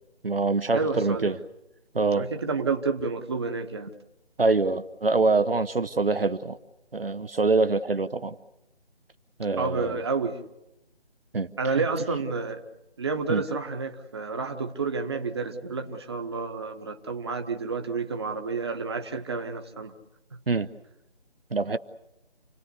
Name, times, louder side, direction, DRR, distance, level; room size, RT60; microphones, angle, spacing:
voice 1, 0.2-1.4 1.9-2.3 4.4-6.6 6.9-8.4 9.4-10.0 11.3-11.5 13.3-13.4 20.5-20.7 21.5-21.8, right 3 dB, 60° right, 11 dB, 1.0 m, -24 dB
voice 2, 0.7-1.4 2.1-3.9 9.6-10.4 11.6-12.6 13.0-19.9, right 4 dB, 25° right, 6 dB, 1.3 m, -30 dB
28.5 x 19.0 x 8.2 m, 0.91 s
figure-of-eight pair, 155°, 32 cm